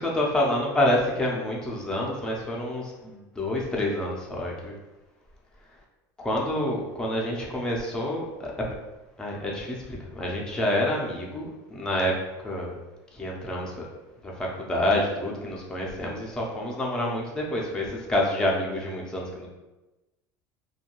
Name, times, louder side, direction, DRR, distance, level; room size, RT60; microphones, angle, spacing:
voice 1, 0.0-4.7 6.2-8.5 9.2-12.7 13.1-13.9 14.2-19.5, left 1 dB, 10° left, -3 dB, 0.4 m, -28 dB
2.5 x 2.2 x 2.8 m, 1.1 s
cardioid pair, 145°, 9 cm